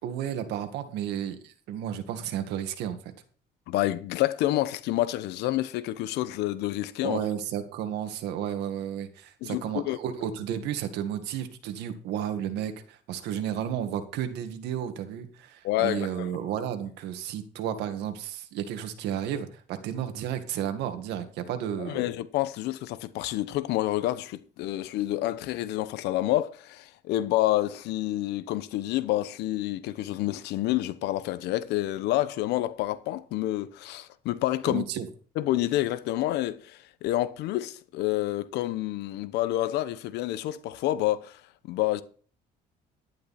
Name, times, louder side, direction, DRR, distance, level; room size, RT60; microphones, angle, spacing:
voice 1, 0.0-3.0 7.0-22.0 34.7-35.1, right 9 dB, 85° right, 2.0 m, -32 dB
voice 2, 3.7-7.2 9.4-10.0 15.6-16.3 21.9-34.8 35.4-41.4 41.6-42.0, left 15 dB, 85° left, 1.0 m, -28 dB
12.0 x 11.0 x 4.3 m
cardioid pair, 110°, 17 cm